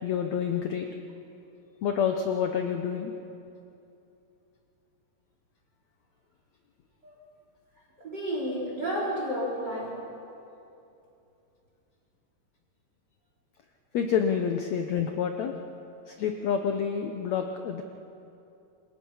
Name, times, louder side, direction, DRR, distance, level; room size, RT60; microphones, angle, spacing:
voice 1, 0.0-0.9 1.8-3.1 13.9-15.5 16.1-17.8, left 7 dB, 80° left, 4 dB, 1.6 m, -28 dB
voice 2, 8.0-10.0, equal, 25° right, -3 dB, 3.9 m, -31 dB
27.5 x 24.0 x 5.6 m, 2.8 s
omnidirectional pair, 4.5 m